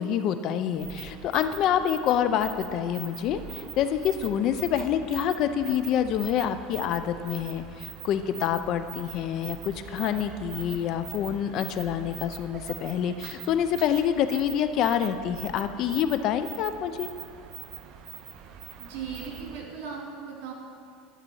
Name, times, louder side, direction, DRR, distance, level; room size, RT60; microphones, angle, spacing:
voice 1, 0.0-17.1, left 9 dB, 50° left, 10 dB, 0.5 m, -27 dB
sound 1, 0.7-19.6, right 9 dB, 45° right, 0.6 m, -43 dB
voice 2, 18.8-20.5, right 6 dB, 75° right, -1 dB, 2.4 m, -37 dB
11.0 x 4.0 x 7.1 m, 2.3 s
supercardioid pair, 135°, 0 cm